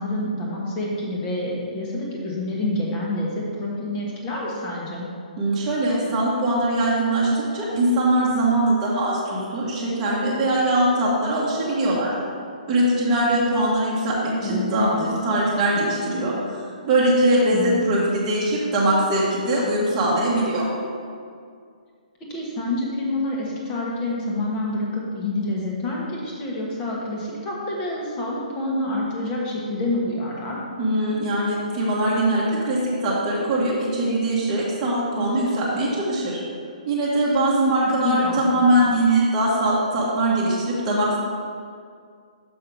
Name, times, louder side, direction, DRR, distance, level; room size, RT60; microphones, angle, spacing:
voice 1, 0.0-5.0 14.4-15.1 17.5-17.9 22.3-30.6 38.0-38.6, left 2 dB, 15° left, -3 dB, 1.2 m, -27 dB
voice 2, 5.4-12.1 12.7-20.7 30.8-36.4 36.8-41.2, right 1 dB, 15° right, -7 dB, 1.3 m, -21 dB
6.1 x 5.5 x 5.3 m, 2.2 s
hypercardioid pair, 170°, 5 cm